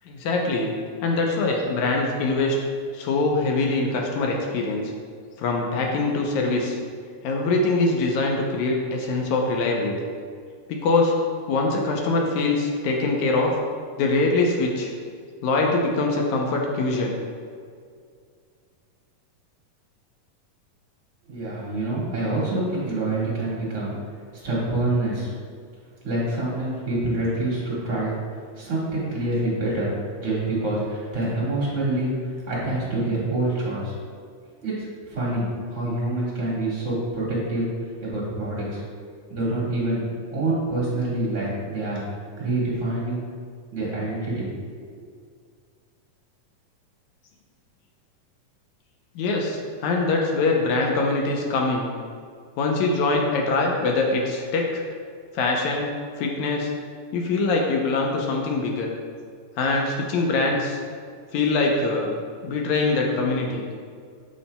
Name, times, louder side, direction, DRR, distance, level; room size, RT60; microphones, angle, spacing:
voice 1, 0.1-0.7 1.0-2.6 2.9-4.9 5.4-6.8 7.2-10.0 10.7-11.1 11.5-13.5 14.0-14.9 15.4-17.2 49.2-51.9 52.6-54.8 55.3-56.7 57.1-58.9 59.6-60.8 61.3-62.1 62.4-63.6, left 3 dB, 75° left, 0 dB, 1.8 m, -23 dB
voice 2, 21.3-24.0 24.3-25.3 26.0-28.1 28.5-29.9 30.2-33.9 34.6-37.7 38.0-38.8 39.3-40.0 40.3-42.0 42.4-43.2 43.7-44.5, right 2 dB, 35° right, -7 dB, 1.1 m, -26 dB
8.5 x 6.9 x 2.2 m, 2.1 s
omnidirectional pair, 3.9 m